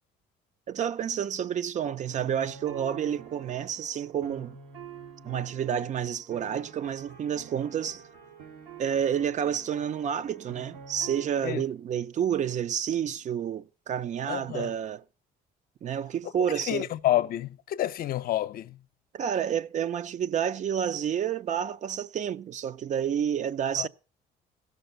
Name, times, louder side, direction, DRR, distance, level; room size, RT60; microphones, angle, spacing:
voice 1, 0.7-4.6 5.2-8.0 8.8-15.0 15.8-16.8 19.1-23.9, right 9 dB, 45° right, 0.6 m, -29 dB
sound 1, 2.0-11.3, right 6 dB, 90° right, 2.1 m, -47 dB
voice 2, 14.3-14.7 16.7-18.8 23.8-23.9, left 13 dB, 60° left, 0.6 m, -28 dB
16.0 x 6.4 x 6.5 m
cardioid pair, 110°, 17 cm